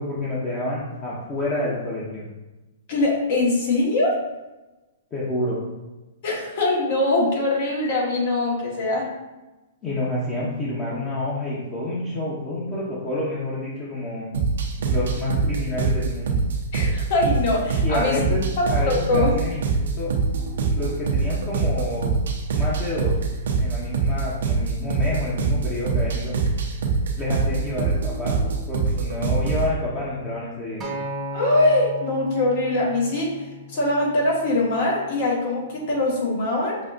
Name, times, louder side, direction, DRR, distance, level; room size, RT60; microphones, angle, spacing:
voice 1, 0.0-2.2 5.1-5.6 9.8-14.3 14.8-16.4 17.8-20.1 20.7-22.1 22.5-23.2 23.6-26.3 27.2-30.8, left 2 dB, 25° left, -8 dB, 1.0 m, -28 dB
voice 2, 2.9-4.2 6.2-9.1 16.7-18.2 18.6-19.3 31.3-36.8, left 2 dB, 55° left, -3 dB, 1.4 m, -22 dB
sound 1, 14.3-29.7, right 4 dB, 70° right, 0.7 m, -24 dB
Acoustic guitar, 30.8-35.1 35.9-36.0, equal, 25° right, 0.8 m, -36 dB
6.1 x 2.5 x 2.5 m, 1.1 s
hypercardioid pair, 125°, 0 cm